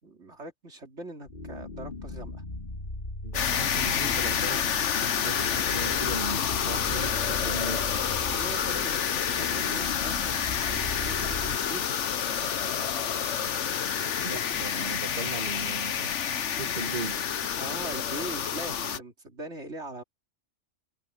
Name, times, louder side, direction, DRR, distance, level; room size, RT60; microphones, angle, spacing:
voice 1, 0.0-2.4 8.3-11.9 17.6-20.0, right 2 dB, 70° right, 3.2 m, -41 dB
sound 1, 1.3-11.6, left 2 dB, 45° left, 2.6 m, -39 dB
voice 2, 3.2-8.0 14.2-16.1 16.5-17.3, right 3 dB, 40° right, 2.2 m, -38 dB
sound 2, 3.3-19.0, left 8 dB, 75° left, 1.3 m, -28 dB
omnidirectional pair, 1.2 m